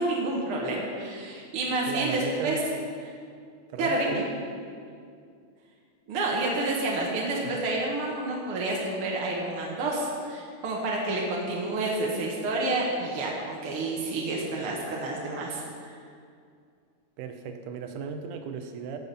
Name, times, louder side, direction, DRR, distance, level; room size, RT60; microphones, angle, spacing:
voice 1, 0.0-2.6 3.8-4.2 6.1-15.9, right 2 dB, 55° right, -3 dB, 1.8 m, -29 dB
voice 2, 1.9-2.7 3.7-4.3 7.4-7.6 17.2-19.0, right 6 dB, 75° right, 6 dB, 2.3 m, -36 dB
16.5 x 6.1 x 5.4 m, 2.3 s
omnidirectional pair, 3.9 m